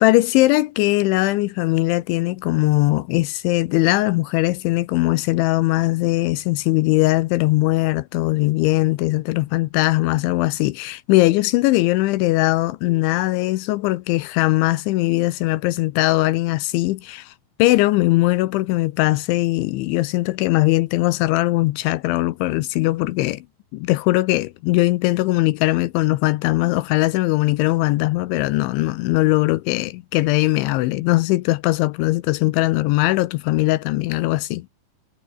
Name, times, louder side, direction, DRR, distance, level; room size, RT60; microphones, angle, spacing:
voice 1, 0.0-17.3 17.6-23.4 23.7-34.7, left 19 dB, 80° left, 3.1 m, -20 dB
omnidirectional pair, 5.4 m